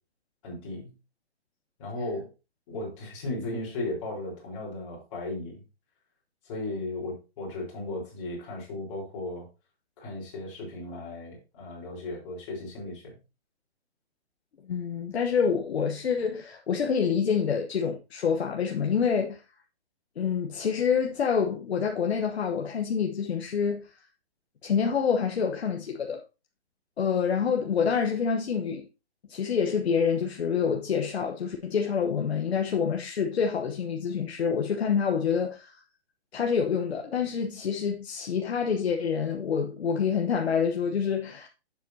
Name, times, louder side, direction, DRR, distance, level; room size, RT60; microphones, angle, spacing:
voice 1, 0.4-0.9 1.8-2.3 2.7-5.6 6.4-9.5 10.0-13.2, left 2 dB, 30° left, 4.0 m, -36 dB
voice 2, 14.6-19.4 20.2-23.9 24.6-26.2 27.0-28.9 29.3-35.8 36.3-41.5, left 6 dB, 70° left, 1.2 m, -27 dB
10.5 x 7.5 x 2.8 m
hypercardioid pair, 165°, 32 cm